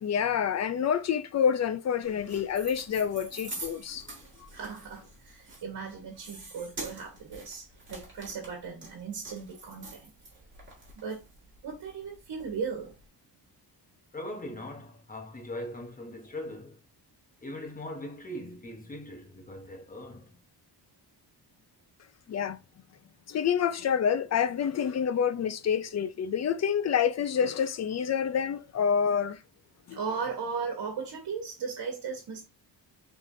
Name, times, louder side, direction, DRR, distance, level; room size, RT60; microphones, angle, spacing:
voice 1, 0.0-4.0 22.3-22.6 23.3-29.4 29.9-30.0, left 7 dB, 40° left, 0.5 m, -27 dB
sound 1, 2.0-13.1, right 2 dB, 25° right, 1.9 m, -46 dB
voice 2, 4.5-10.1 11.0-11.2 11.6-12.9 29.9-32.4, right 5 dB, 65° right, 1.5 m, -37 dB
voice 3, 14.1-16.8 17.4-20.4, left 1 dB, 20° left, 1.0 m, -40 dB
5.4 x 3.6 x 2.6 m
wide cardioid pair, 170°, 42 cm